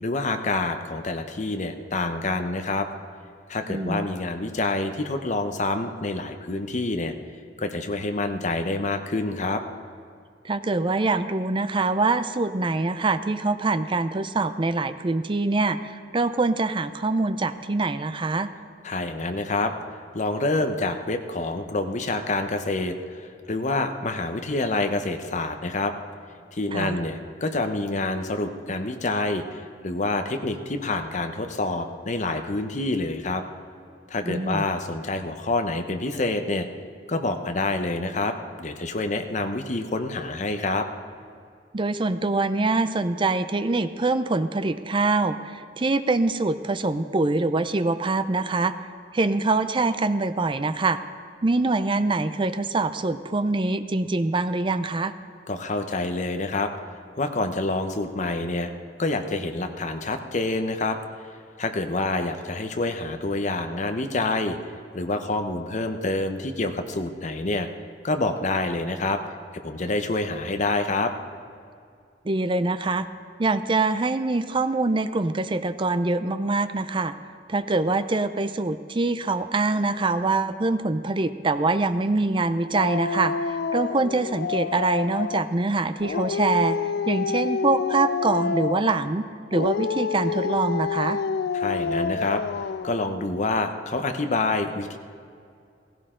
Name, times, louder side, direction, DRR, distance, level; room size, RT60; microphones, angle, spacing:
voice 1, 0.0-2.9 3.5-7.1 7.6-9.6 18.8-19.7 20.1-25.9 26.5-33.4 34.1-36.7 37.1-40.9 55.5-56.7 57.2-58.7 59.0-61.0 61.6-64.6 64.9-67.7 68.0-69.2 69.6-71.1 91.5-92.4 92.8-95.0, left 2 dB, 40° left, 6 dB, 0.8 m, -27 dB
voice 2, 3.7-4.1 10.4-18.5 26.7-26.9 34.3-34.7 41.7-48.7 49.1-51.0 51.4-55.1 72.3-73.1 73.4-77.1 77.5-86.8 87.1-91.2, right 3 dB, 30° right, 12 dB, 0.5 m, -24 dB
Dog, 82.7-85.5 86.0-89.1 89.5-93.0, left 5 dB, 60° left, 0.3 m, -28 dB
16.5 x 15.5 x 3.8 m, 2.4 s
head